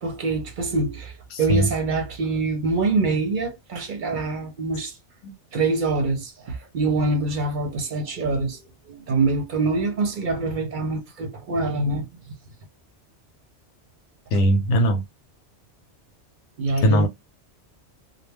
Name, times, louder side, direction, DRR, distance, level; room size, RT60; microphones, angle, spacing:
voice 1, 0.0-5.0 5.5-8.6 8.9-12.2 16.6-17.1, right 3 dB, 55° right, 0.6 m, -25 dB
voice 2, 1.3-1.7 14.3-15.0 16.8-17.1, equal, 85° left, 0.9 m, -19 dB
2.1 x 2.1 x 3.3 m
omnidirectional pair, 1.2 m